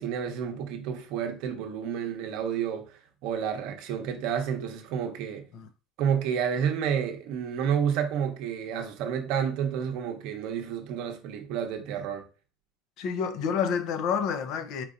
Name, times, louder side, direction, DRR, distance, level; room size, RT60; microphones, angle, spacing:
voice 1, 0.0-5.5 6.0-12.3, right 8 dB, 60° right, 0.8 m, -30 dB
voice 2, 13.0-14.9, left 7 dB, 50° left, 0.5 m, -29 dB
4.5 x 2.6 x 3.8 m
cardioid pair, 155°, 0 cm